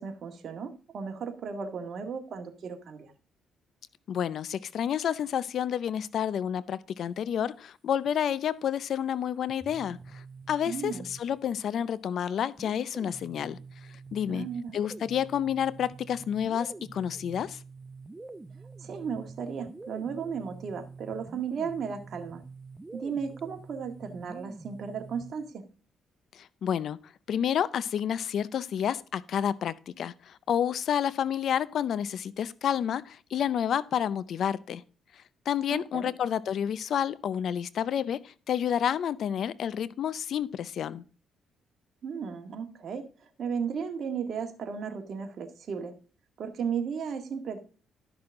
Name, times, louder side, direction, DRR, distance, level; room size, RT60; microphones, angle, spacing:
voice 1, 0.0-3.1 10.7-11.1 14.3-14.8 18.8-22.4 22.9-25.6 35.7-36.1 42.0-43.1 43.4-46.0 46.4-47.6, right 6 dB, 60° right, 1.8 m, -35 dB
voice 2, 4.1-14.5 14.7-17.6 26.3-34.8 35.5-41.0, left 9 dB, 65° left, 0.5 m, -30 dB
sound 1, 9.5-11.6 12.6-25.5, right 4 dB, 20° right, 0.6 m, -46 dB
12.0 x 6.1 x 3.7 m
cardioid pair, 90°, 0 cm